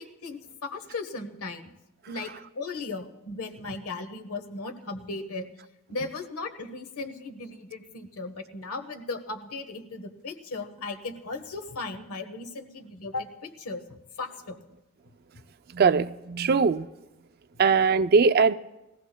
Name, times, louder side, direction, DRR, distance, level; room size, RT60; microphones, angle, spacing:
voice 1, 0.0-1.7 2.1-5.5 5.9-14.6, left 3 dB, 85° left, 1.2 m, -37 dB
voice 2, 15.7-16.9 17.6-18.5, right 5 dB, 45° right, 0.4 m, -21 dB
21.0 x 15.5 x 2.2 m
head